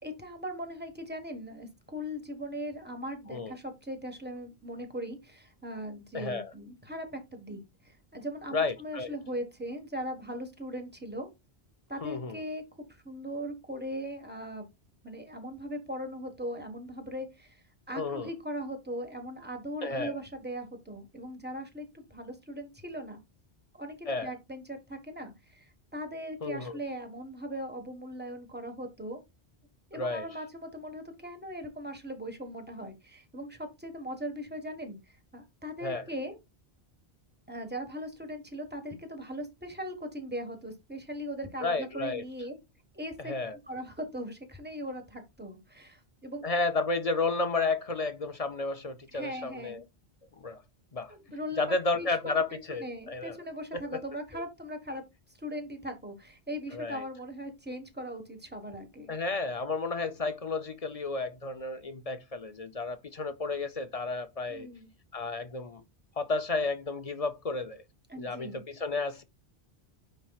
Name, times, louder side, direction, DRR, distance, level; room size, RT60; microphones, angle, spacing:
voice 1, 0.0-11.3 11.9-14.7 15.0-23.2 23.7-29.2 29.9-36.4 37.5-42.6 42.9-43.3 43.7-46.4 49.1-49.8 51.1-52.4 52.8-55.0 55.4-59.1 64.5-64.9 68.1-68.6, equal, 10° right, 1.3 m, -39 dB
voice 2, 6.1-6.5 8.5-9.1 12.0-12.4 17.9-18.3 19.8-20.2 24.1-24.3 26.4-26.8 29.9-30.3 35.8-36.0 41.6-42.2 43.2-43.6 46.4-49.8 50.4-50.6 50.9-51.1 51.6-53.4 53.7-54.0 56.7-57.0 59.1-64.7 65.1-65.8 66.2-67.8 68.2-69.2, left 3 dB, 45° left, 0.5 m, -32 dB
9.7 x 4.4 x 2.4 m
omnidirectional pair, 1.1 m